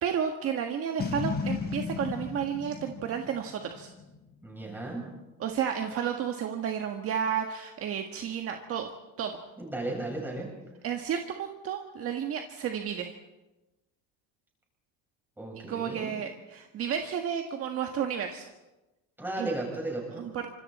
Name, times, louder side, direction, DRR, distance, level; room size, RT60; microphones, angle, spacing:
voice 1, 0.0-3.9 5.4-8.9 9.2-9.4 10.8-13.1 15.7-18.4 19.4-19.5 20.2-20.5, right 8 dB, 40° right, 4 dB, 1.6 m, -32 dB
Boom, 1.0-4.3, left 5 dB, 25° left, 4.0 m, -34 dB
voice 2, 4.4-5.2 9.6-10.5 15.4-16.2 19.2-20.3, right 2 dB, 5° right, -2 dB, 7.5 m, -35 dB
28.5 x 26.0 x 4.3 m, 1.0 s
cardioid pair, 155°, 35 cm